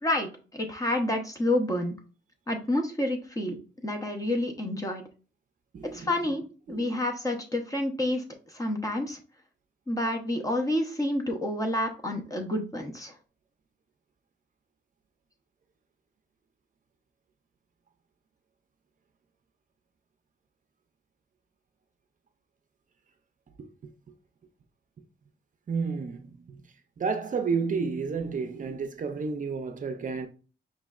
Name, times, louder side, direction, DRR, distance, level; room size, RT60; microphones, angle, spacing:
voice 1, 0.0-1.9 2.5-3.6 3.8-5.0 5.8-9.2 9.9-13.2, left 1 dB, 20° left, 0.7 m, -29 dB
voice 2, 5.7-6.1 6.7-6.9 23.6-23.7 25.7-26.6 27.0-30.3, right 5 dB, 45° right, 0.5 m, -31 dB
5.4 x 3.1 x 2.3 m
wide cardioid pair, 160°, 19 cm